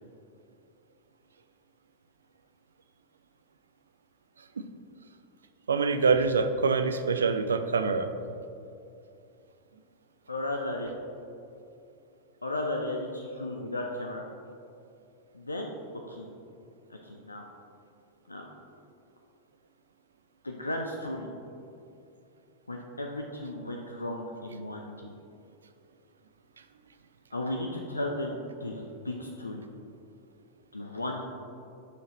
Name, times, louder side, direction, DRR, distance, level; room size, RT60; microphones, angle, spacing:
voice 1, 5.7-8.1, right 4 dB, 70° right, 9 dB, 0.4 m, -25 dB
voice 2, 10.3-10.9 12.4-14.3 15.3-15.7 16.1-16.3 16.9-17.4 18.3-18.5 20.4-21.3 22.7-25.1 27.3-29.6 30.7-31.3, left 1 dB, 80° left, 1 dB, 0.5 m, -35 dB
10.0 x 6.3 x 3.0 m, 2.6 s
figure-of-eight pair, 90°, 0 cm